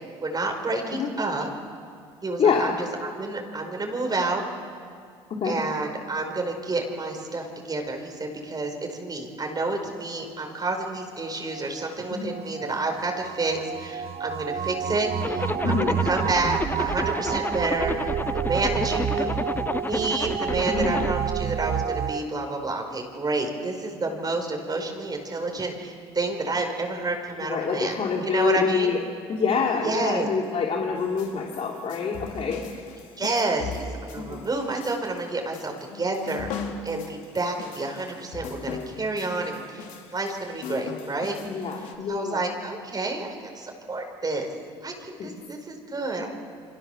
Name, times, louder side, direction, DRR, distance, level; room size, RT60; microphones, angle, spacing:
voice 1, 0.2-1.5 2.2-2.7 3.2-4.4 5.4-19.3 19.7-27.9 28.2-28.9 29.8-30.3 33.2-36.5 36.8-39.9 40.1-41.4 42.1-44.5 44.8-46.3, right 2 dB, 30° right, 3 dB, 5.0 m, -29 dB
voice 2, 2.4-2.7 5.3-5.5 12.1-12.4 15.6-16.0 20.7-21.1 27.4-29.0 29.3-32.6 34.1-34.5 41.4-42.4 45.2-45.3 46.1-46.3, left 5 dB, 50° left, -1 dB, 3.3 m, -26 dB
sound 1, 11.0-22.2, right 9 dB, 50° right, 0.9 m, -30 dB
Zipper (clothing), 15.2-21.1, left 3 dB, 15° left, 0.7 m, -30 dB
sound 2, 31.0-41.9, left 5 dB, 75° left, 3.3 m, -39 dB
28.5 x 25.0 x 7.1 m, 2.2 s
supercardioid pair, 70°, 13 cm